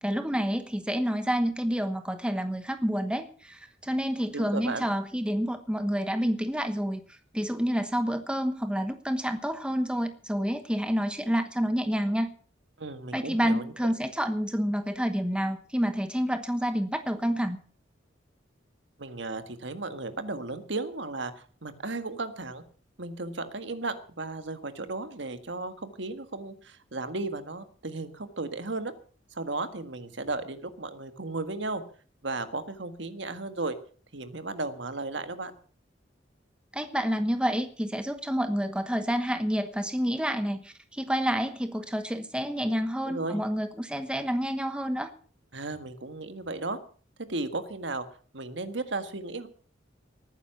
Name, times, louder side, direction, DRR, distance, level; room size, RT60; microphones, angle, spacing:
voice 1, 0.0-12.3 13.1-17.6 36.7-45.1, equal, 5° right, 8 dB, 1.1 m, -29 dB
voice 2, 4.3-4.9 12.8-13.9 19.0-22.6 23.0-28.9 29.3-31.8 32.2-33.8 34.1-35.5 43.1-43.4 45.5-46.8 47.2-48.0 48.3-49.5, right 3 dB, 70° right, 9 dB, 1.7 m, -35 dB
18.5 x 9.9 x 5.9 m, 0.43 s
head